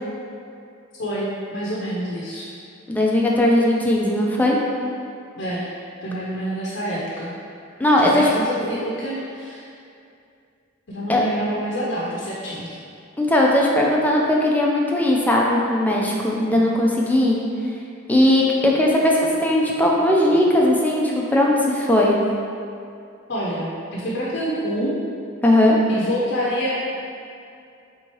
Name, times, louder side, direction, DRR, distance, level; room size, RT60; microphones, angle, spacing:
voice 1, 1.0-2.5 5.4-5.7 6.0-7.3 8.0-9.7 10.9-12.7 23.3-24.9 25.9-26.8, equal, 60° left, -6 dB, 0.7 m, -27 dB
voice 2, 2.9-4.6 7.8-8.3 11.1-11.2 13.2-17.4 18.1-22.2 25.4-25.8, left 1 dB, 10° left, -3 dB, 0.4 m, -18 dB
4.4 x 3.5 x 3.1 m, 2.5 s
head